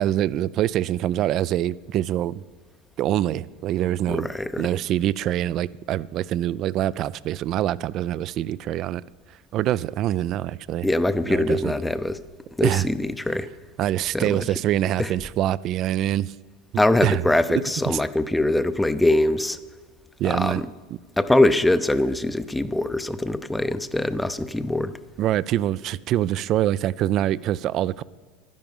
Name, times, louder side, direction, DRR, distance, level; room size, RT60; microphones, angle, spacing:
voice 1, 0.0-2.4 3.0-4.3 4.6-9.0 9.5-10.9 11.3-11.7 12.6-12.9 13.8-16.3 16.7-17.2 17.9-18.0 20.2-20.6 25.2-28.0, right 12 dB, 45° right, 0.3 m, -25 dB
voice 2, 4.1-4.7 10.8-12.2 12.6-13.5 14.1-14.4 15.0-15.1 16.8-19.6 20.2-20.6 21.2-24.9, left 1 dB, 5° left, 0.5 m, -22 dB
11.5 x 10.5 x 5.4 m
supercardioid pair, 110°, 0 cm